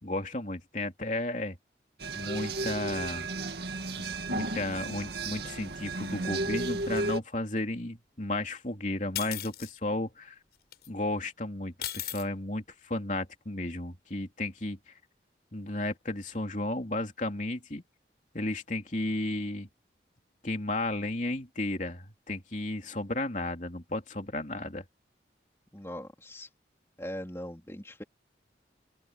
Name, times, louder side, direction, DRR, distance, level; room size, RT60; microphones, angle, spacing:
voice 1, 0.0-1.6 2.1-3.3 4.0-10.3 10.9-14.9 15.5-17.8 18.3-19.7 20.4-24.8, left 2 dB, 40° left, 3.1 m, -33 dB
sound 1, 2.0-7.2, right 2 dB, 65° right, 2.0 m, -34 dB
sound 2, 9.1-9.7 10.7-10.9 11.8-12.2, left 11 dB, 65° left, 7.0 m, -36 dB
voice 2, 25.7-26.5 27.0-28.0, left 1 dB, 15° left, 3.5 m, -40 dB
open air
head